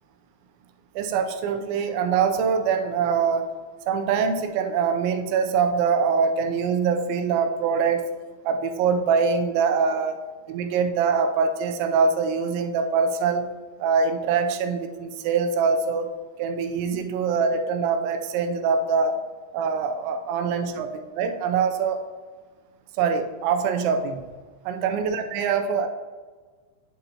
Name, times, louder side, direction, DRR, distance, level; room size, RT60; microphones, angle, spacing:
voice 1, 1.0-3.5 3.9-8.0 8.4-10.2 10.5-13.5 13.8-16.1 16.4-19.2 19.5-20.9 21.2-22.0 23.0-24.3 24.7-25.9, right 5 dB, 85° right, 6 dB, 2.9 m, -23 dB
10.5 x 4.0 x 2.8 m, 1.4 s
omnidirectional pair, 5.2 m